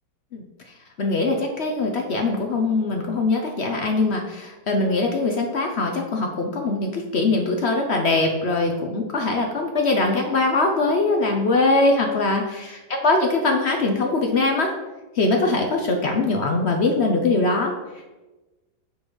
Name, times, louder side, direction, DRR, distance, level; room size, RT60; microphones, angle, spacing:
voice 1, 1.0-14.7 15.1-17.7, left 2 dB, 75° left, 2 dB, 0.6 m, -22 dB
6.9 x 5.3 x 6.1 m, 1.1 s
omnidirectional pair, 2.3 m